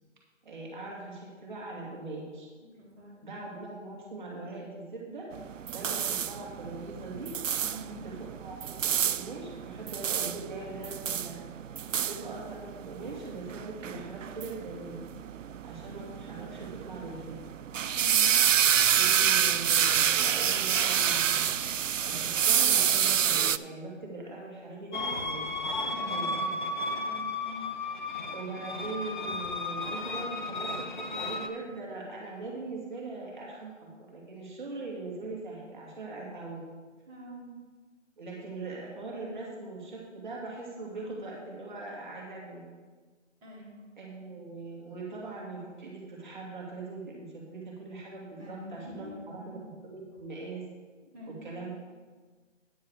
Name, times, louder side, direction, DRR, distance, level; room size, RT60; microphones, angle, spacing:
voice 1, 0.4-2.5 3.2-5.3 5.7-7.3 7.7-11.4 11.8-15.0 15.6-17.3 18.9-26.6 28.3-36.6 38.2-42.6 44.0-49.6 49.8-50.6 51.3-51.7, right 3 dB, 40° right, -3 dB, 2.6 m, -41 dB
voice 2, 2.7-3.3 7.6-8.0 17.8-18.3 25.7-26.3 26.9-27.7 37.1-37.6 43.4-43.8 48.4-49.6 51.1-51.5, left 1 dB, 5° right, -14 dB, 2.1 m, -45 dB
sound 1, 5.3-23.6, right 9 dB, 80° right, 0.5 m, -28 dB
sound 2, 24.9-31.5, left 2 dB, 40° left, 0.8 m, -34 dB
9.8 x 8.0 x 4.9 m, 1.4 s
figure-of-eight pair, 165°, 38 cm